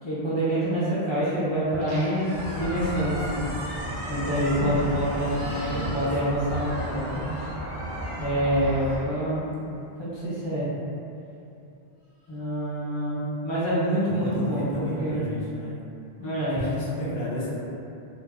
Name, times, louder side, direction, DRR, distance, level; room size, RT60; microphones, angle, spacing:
voice 1, 0.0-3.5 4.1-7.2 8.2-9.6 10.0-10.7 12.3-15.2 16.2-17.0, equal, 30° left, -11 dB, 0.7 m, -26 dB
Squeak, 1.7-9.9, equal, 85° right, 0.8 m, -40 dB
sound 1, 2.3-9.0, equal, 50° right, 0.6 m, -34 dB
voice 2, 5.2-6.0 14.2-15.8 16.5-17.6, equal, 75° left, -7 dB, 0.9 m, -33 dB
Livestock farm animals working animals, 5.2-7.8 12.2-12.4, right 1 dB, 5° right, 0.9 m, -46 dB
2.5 x 2.1 x 2.3 m, 2.6 s
omnidirectional pair, 1.0 m